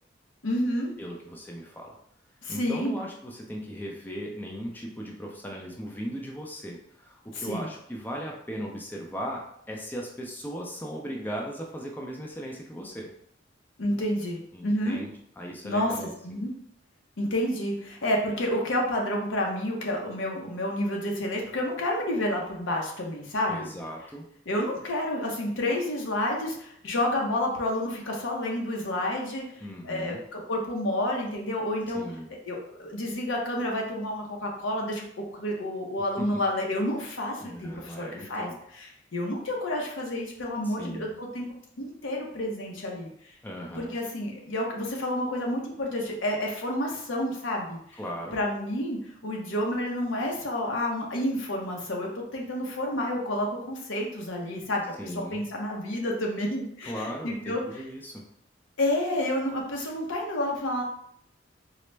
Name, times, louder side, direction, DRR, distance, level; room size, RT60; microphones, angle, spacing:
voice 1, 0.4-0.9 2.4-2.9 7.3-7.7 13.8-15.0 15.6-15.9 16.2-16.5 17.2-23.7 24.5-32.0 32.5-41.5 41.8-43.1 43.8-48.0 48.3-49.0 49.2-54.8 55.1-57.8 58.8-60.8, left 1 dB, 85° left, 0 dB, 0.8 m, -30 dB
voice 2, 1.0-2.0 2.5-13.1 14.5-16.5 23.5-24.3 29.6-30.2 31.9-32.3 36.2-36.4 37.4-38.6 40.6-41.1 43.4-44.0 47.9-48.4 55.0-55.4 56.8-58.2, equal, 10° left, -1 dB, 0.4 m, -37 dB
3.9 x 2.1 x 3.3 m, 0.69 s
head